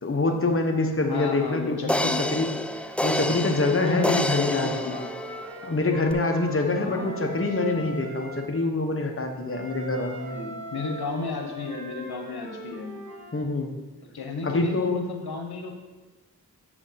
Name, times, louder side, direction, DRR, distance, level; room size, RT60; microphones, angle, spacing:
voice 1, 0.0-2.6 3.0-5.0 5.6-10.4 13.3-13.7 14.4-15.0, left 2 dB, 35° left, 3 dB, 1.1 m, -25 dB
voice 2, 1.1-2.2 3.8-5.0 6.8-7.1 10.3-13.0 14.1-15.7, left 3 dB, 85° left, 3 dB, 1.0 m, -33 dB
sound 1, 1.2-1.3 1.9-5.6 6.1-6.2, left 1 dB, 5° left, 0.3 m, -29 dB
Wind instrument woodwind instrument, 4.3-8.5 9.5-13.4, equal, 45° right, 2.6 m, -40 dB
7.5 x 4.9 x 5.8 m, 1.2 s
wide cardioid pair, 50°, 37 cm